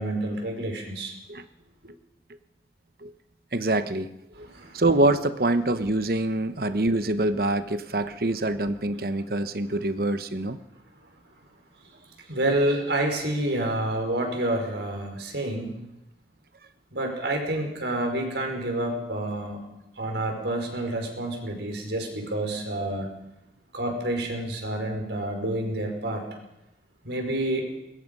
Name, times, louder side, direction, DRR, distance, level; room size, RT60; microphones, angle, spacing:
voice 1, 0.0-1.1 4.3-4.8 12.3-15.8 16.9-19.6 20.0-23.1 23.7-26.3 27.0-27.7, right 1 dB, 80° right, 3 dB, 5.2 m, -28 dB
voice 2, 3.5-4.1 4.4-4.5 4.7-10.6, right 2 dB, 55° right, 10 dB, 1.0 m, -25 dB
22.5 x 21.0 x 5.5 m, 0.90 s
head